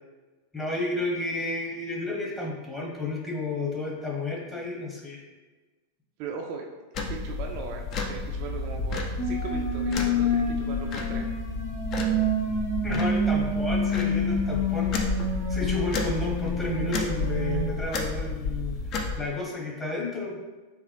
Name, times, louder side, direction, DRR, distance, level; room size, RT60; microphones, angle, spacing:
voice 1, 0.5-5.2 12.8-14.9 15.2-18.8 19.2-20.4, left 2 dB, 10° left, -3 dB, 1.1 m, -32 dB
voice 2, 6.2-6.7 7.1-11.3, right 5 dB, 45° right, 1 dB, 0.4 m, -38 dB
sound 1, 6.9-19.2, left 3 dB, 35° left, 0.5 m, -32 dB
sound 2, 9.2-17.7, left 1 dB, 70° left, 1.2 m, -28 dB
3.9 x 3.0 x 3.2 m, 1.3 s
figure-of-eight pair, 90°, 0 cm